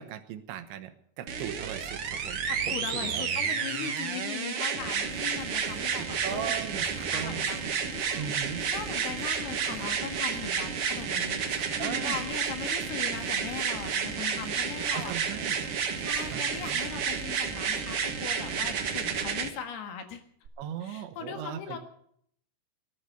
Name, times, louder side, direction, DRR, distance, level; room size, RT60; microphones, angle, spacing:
voice 1, 0.0-3.3 6.0-7.5 8.2-8.7 11.8-12.2 14.9-15.6 16.3-16.4 16.7-16.8 20.6-21.8, right 10 dB, 90° right, 10 dB, 3.5 m, -38 dB
sound 1, 1.3-19.5 20.5-20.6, right 6 dB, 70° right, 1.3 m, -31 dB
voice 2, 2.5-15.1 16.0-20.2 20.8-21.8, left 8 dB, 65° left, 6 dB, 3.5 m, -40 dB
sound 2, 4.8-19.3, left 1 dB, 35° left, 7.1 m, -49 dB
18.5 x 11.5 x 6.6 m, 0.65 s
omnidirectional pair, 5.0 m